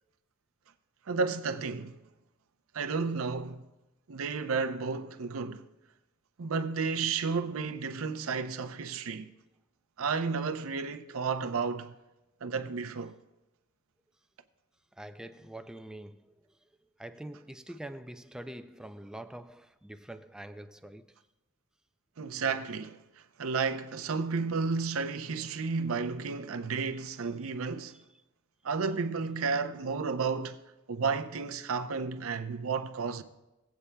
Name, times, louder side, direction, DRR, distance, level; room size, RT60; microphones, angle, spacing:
voice 1, 1.1-2.0 2.7-3.7 4.1-5.7 6.4-9.3 10.0-11.9 12.4-13.2 22.2-23.0 23.4-28.0 28.6-30.6 30.9-33.2, right 4 dB, 80° right, 0.6 m, -32 dB
voice 2, 15.0-16.6 17.0-21.2 27.9-28.0, right 1 dB, 5° right, 0.3 m, -45 dB
18.0 x 8.3 x 2.2 m
head